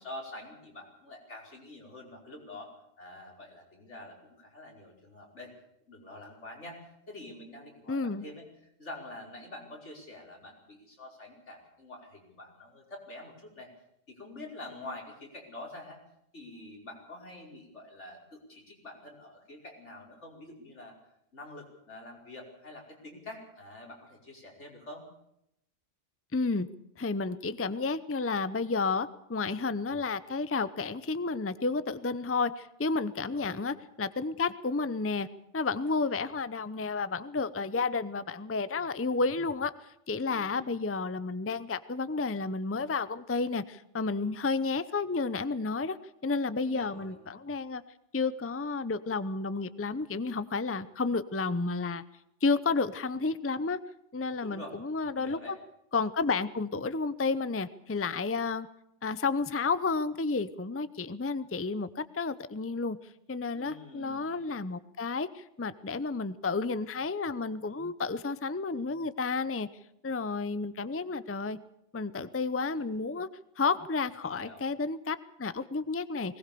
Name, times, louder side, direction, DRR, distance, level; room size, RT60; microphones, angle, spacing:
voice 1, 0.0-2.7 3.0-5.5 5.9-6.8 7.1-8.4 8.8-13.7 14.1-16.0 16.3-20.9 21.3-25.0 33.2-33.7 40.2-40.8 46.5-47.1 54.4-54.8 55.1-55.6 63.5-64.3 74.2-74.6, left 2 dB, 80° left, 0 dB, 5.5 m, -46 dB
voice 2, 7.9-8.2 26.3-26.7 27.0-35.3 35.5-46.0 46.2-47.8 48.1-52.0 52.4-53.8 54.1-55.6 55.9-58.7 59.0-63.0 63.3-69.7 70.0-71.6 71.9-73.3 73.6-76.4, left 4 dB, 15° left, 14 dB, 0.6 m, -31 dB
20.5 x 19.0 x 6.9 m, 0.78 s
omnidirectional pair, 1.2 m